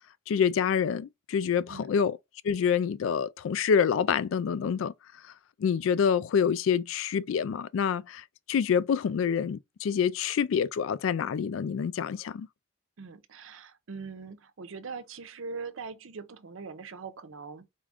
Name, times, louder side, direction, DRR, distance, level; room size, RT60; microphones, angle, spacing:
voice 1, 0.3-2.2 2.4-4.9 5.6-12.5, left 7 dB, 80° left, 0.3 m, -27 dB
voice 2, 13.0-17.7, right 4 dB, 80° right, 0.6 m, -41 dB
4.4 x 2.4 x 3.4 m
head